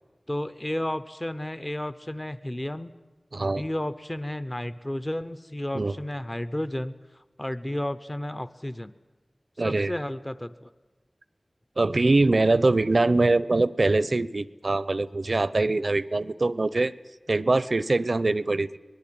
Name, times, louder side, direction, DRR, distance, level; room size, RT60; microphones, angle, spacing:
voice 1, 0.3-2.9 3.4-7.0 7.4-8.9 9.6-10.7, left 1 dB, 20° left, 14 dB, 0.8 m, -32 dB
voice 2, 3.3-3.6 5.7-5.9 9.6-9.9 11.8-16.9 17.3-18.8, right 2 dB, 60° right, 18 dB, 0.7 m, -23 dB
24.5 x 20.0 x 8.7 m, 1.2 s
wide cardioid pair, 60°, 0 cm